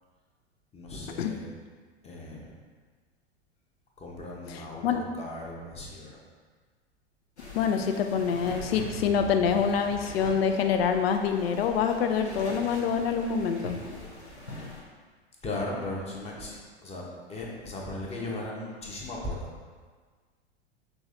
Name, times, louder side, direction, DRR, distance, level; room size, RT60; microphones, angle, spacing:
voice 1, 0.7-1.5 2.0-2.5 4.0-6.2 15.4-19.5, left 2 dB, 20° left, -3 dB, 0.9 m, -37 dB
sound 1, 7.4-14.8, left 1 dB, 90° left, 1.1 m, -42 dB
voice 2, 7.5-13.8, left 6 dB, 65° left, 6 dB, 0.5 m, -26 dB
6.1 x 3.1 x 2.5 m, 1.5 s
hypercardioid pair, 95°, 32 cm